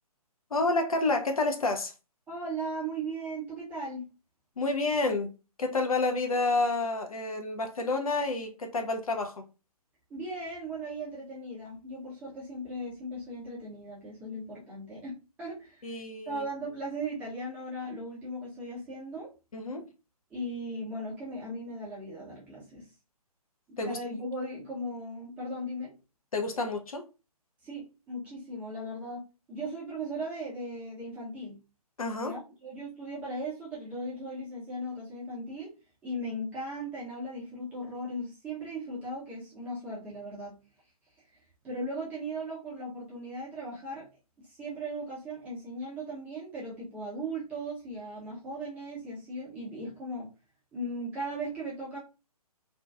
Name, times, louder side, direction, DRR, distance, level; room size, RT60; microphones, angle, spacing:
voice 1, 0.5-1.9 4.6-5.3 5.6-9.3 15.8-16.4 19.5-19.9 23.8-24.0 26.3-27.0 32.0-32.3, left 3 dB, 65° left, 0.5 m, -29 dB
voice 2, 2.3-4.0 10.1-16.0 16.3-19.3 20.3-22.9 23.7-25.9 27.6-29.2 29.5-31.6 32.2-35.7 36.0-40.6 41.6-44.1 44.4-50.3 50.7-52.0, right 1 dB, 10° right, 0.7 m, -37 dB
2.5 x 2.2 x 2.3 m
figure-of-eight pair, 135°, 20 cm